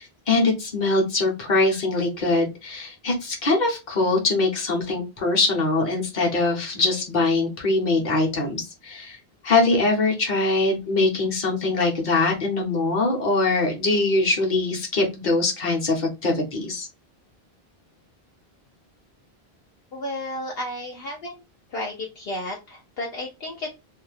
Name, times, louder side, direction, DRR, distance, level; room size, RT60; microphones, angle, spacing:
voice 1, 0.0-9.2 9.4-16.9, left 3 dB, 45° left, 0 dB, 1.1 m, -22 dB
voice 2, 19.9-21.3 21.7-23.8, left 1 dB, 70° left, -1 dB, 0.9 m, -32 dB
2.7 x 2.2 x 3.2 m, 0.25 s
omnidirectional pair, 1.1 m